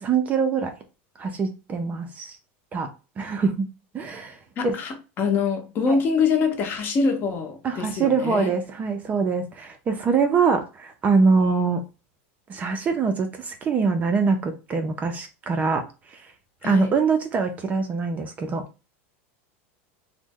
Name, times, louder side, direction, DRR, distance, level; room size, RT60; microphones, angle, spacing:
voice 1, 0.0-0.7 1.2-2.4 2.7-2.9 3.2-3.7 3.9-4.8 5.9-6.0 7.6-11.8 12.5-16.3 16.6-18.6, right 5 dB, 20° right, 0.4 m, -24 dB
voice 2, 4.6-8.5 16.6-16.9, left 5 dB, 30° left, 0.7 m, -24 dB
3.0 x 2.1 x 3.5 m
supercardioid pair, 155°, 7 cm